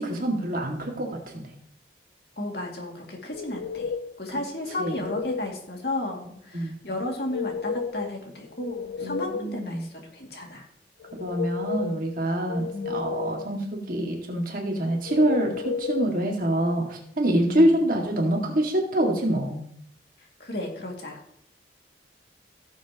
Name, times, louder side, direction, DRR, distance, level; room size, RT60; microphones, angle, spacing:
voice 1, 0.0-1.5 4.8-5.0 6.5-6.8 9.0-9.9 11.2-19.6, right 1 dB, 50° right, 0 dB, 2.2 m, -26 dB
voice 2, 2.4-10.7 12.7-13.0 17.5-17.8 20.2-21.2, left 1 dB, 60° left, 0 dB, 2.5 m, -34 dB
sound 1, 3.3-4.2 4.7-5.5 7.1-8.1 8.5-9.6 11.0-12.0 12.5-13.5 15.1-16.1, left 5 dB, 80° left, 0.4 m, -33 dB
17.0 x 7.2 x 3.0 m, 0.71 s
head